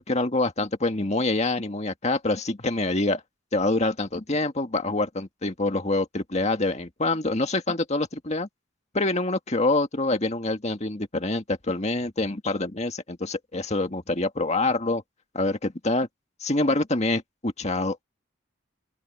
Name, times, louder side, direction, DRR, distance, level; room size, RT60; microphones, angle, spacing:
voice 1, 0.0-3.2 3.5-8.5 8.9-15.0 15.3-16.1 16.4-18.0, left 2 dB, 35° left, 1.9 m, -26 dB
open air
head